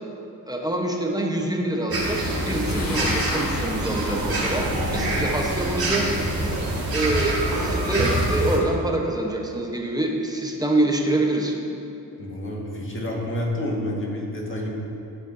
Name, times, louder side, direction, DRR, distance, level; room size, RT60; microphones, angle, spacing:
voice 1, 0.5-6.2 6.9-11.6, right 1 dB, 10° right, 0 dB, 1.1 m, -25 dB
sound 1, 1.9-8.6, right 1 dB, 60° right, 1.8 m, -25 dB
sound 2, 2.7-8.0, left 3 dB, 55° left, 1.0 m, -36 dB
voice 2, 4.6-5.3 12.2-14.7, left 1 dB, 30° left, -3 dB, 1.9 m, -29 dB
13.5 x 5.1 x 2.8 m, 2.7 s
cardioid pair, 45°, 40 cm